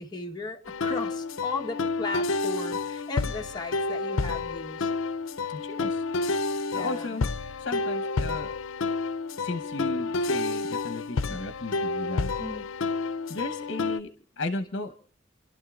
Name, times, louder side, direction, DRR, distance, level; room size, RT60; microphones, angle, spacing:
voice 1, 0.0-4.9 6.7-7.1 12.4-12.8, left 3 dB, 20° left, 1.2 m, -36 dB
sound 1, 0.7-14.0, left 3 dB, 90° left, 0.5 m, -30 dB
voice 2, 5.5-6.0 6.5-7.3 7.6-8.5 9.4-12.3 13.3-15.0, left 2 dB, 65° left, 1.0 m, -35 dB
29.5 x 12.0 x 2.4 m
head